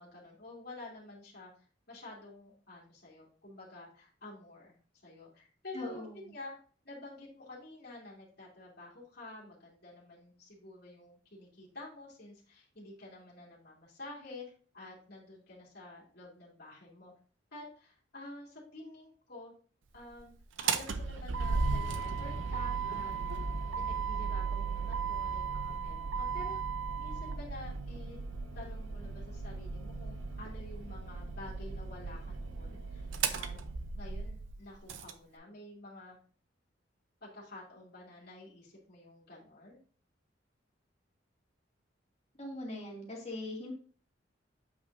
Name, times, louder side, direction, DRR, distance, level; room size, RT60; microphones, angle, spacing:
voice 1, 0.0-1.5 1.9-4.7 5.0-6.6 6.8-17.1 17.5-19.5 19.9-20.3 20.6-23.1 23.8-26.6 27.0-28.2 28.5-33.6 34.0-36.2 37.2-39.8, left 2 dB, 55° left, -5 dB, 2.4 m, -49 dB
voice 2, 5.7-6.1 42.4-43.7, left 2 dB, 35° left, -2 dB, 2.4 m, -40 dB
Motor vehicle (road), 20.4-35.1, right 5 dB, 90° right, 0.6 m, -36 dB
8.2 x 5.4 x 2.6 m, 0.42 s
head